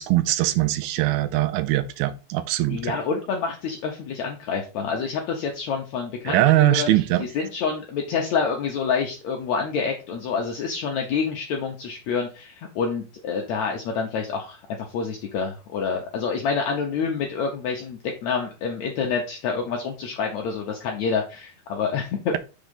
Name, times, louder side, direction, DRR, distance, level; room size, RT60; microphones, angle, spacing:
voice 1, 0.0-3.0 6.3-7.2, right 15 dB, 80° right, 2.4 m, -21 dB
voice 2, 2.7-6.9 7.2-14.6 14.9-22.4, left 5 dB, 75° left, 1.7 m, -27 dB
6.0 x 3.8 x 5.3 m
omnidirectional pair, 4.3 m